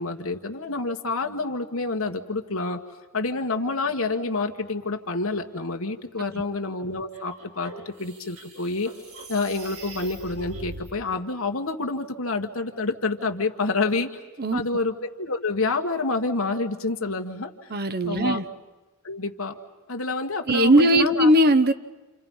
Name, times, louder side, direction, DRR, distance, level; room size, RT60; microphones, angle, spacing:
voice 1, 0.0-2.8 3.1-8.9 9.3-14.2 14.5-17.7 18.0-18.4 19.0-19.6 19.9-21.3, left 3 dB, 70° left, 5 dB, 1.7 m, -28 dB
sound 1, 7.1-10.9, right 2 dB, 85° right, 4.6 m, -41 dB
voice 2, 17.7-18.5 20.5-21.7, right 1 dB, 45° right, 10 dB, 0.9 m, -19 dB
29.5 x 28.0 x 5.6 m, 1.1 s
head